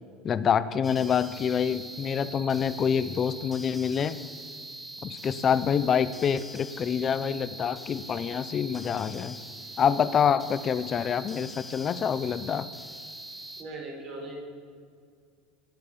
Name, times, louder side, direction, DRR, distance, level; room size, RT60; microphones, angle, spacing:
voice 1, 0.2-4.2 5.0-9.4 9.8-12.7, left 7 dB, 25° left, 15 dB, 0.5 m, -26 dB
sound 1, 0.8-13.6, right 1 dB, 5° right, 1.1 m, -43 dB
voice 2, 13.6-14.3, right 2 dB, 35° right, 0 dB, 4.0 m, -39 dB
18.5 x 8.9 x 7.2 m, 2.2 s
cardioid pair, 170°, 0 cm